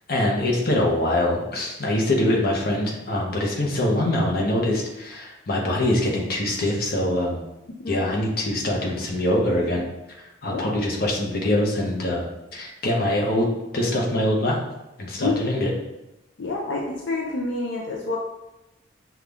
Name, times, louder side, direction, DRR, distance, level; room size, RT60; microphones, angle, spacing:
voice 1, 0.1-7.4 7.9-9.8 10.4-12.2 12.5-13.5 13.7-14.6 15.0-15.7, left 1 dB, 50° left, -1 dB, 0.9 m, -23 dB
voice 2, 15.2-15.5 16.4-18.2, left 2 dB, 75° left, -2 dB, 0.6 m, -28 dB
5.7 x 2.4 x 3.4 m, 0.95 s
head